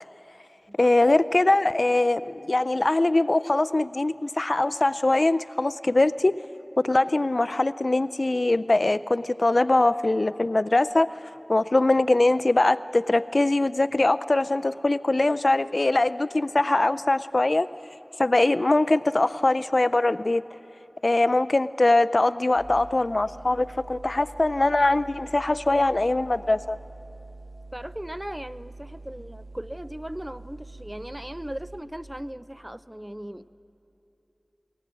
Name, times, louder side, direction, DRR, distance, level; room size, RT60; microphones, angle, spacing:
voice 1, 0.8-6.3 6.8-11.2 11.5-17.7 18.2-20.4 21.0-26.8, left 2 dB, 60° left, 16 dB, 0.4 m, -22 dB
sound 1, 22.6-31.8, right 2 dB, 10° left, 2.2 m, -45 dB
voice 2, 27.7-33.5, equal, 15° right, 15 dB, 0.4 m, -37 dB
19.5 x 18.0 x 7.4 m, 3.0 s
wide cardioid pair, 50°, 0 cm